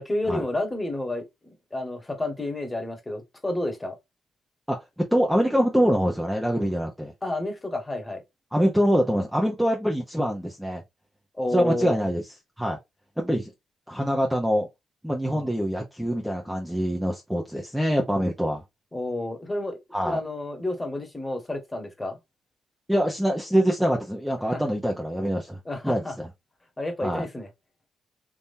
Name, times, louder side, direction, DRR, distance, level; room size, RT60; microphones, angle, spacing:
voice 1, 0.0-4.0 7.2-8.2 11.4-12.1 15.3-15.5 18.9-19.8 20.0-22.2 24.5-24.6 25.6-26.1 26.8-27.5, left 1 dB, 15° left, 1.5 m, -30 dB
voice 2, 5.1-7.1 8.5-10.8 11.5-12.2 12.6-12.8 13.2-13.5 13.9-14.7 15.0-18.6 19.9-20.2 22.9-26.3 27.0-27.2, equal, ahead, 0.8 m, -24 dB
3.7 x 2.8 x 2.7 m
cardioid pair, 90°, 0 cm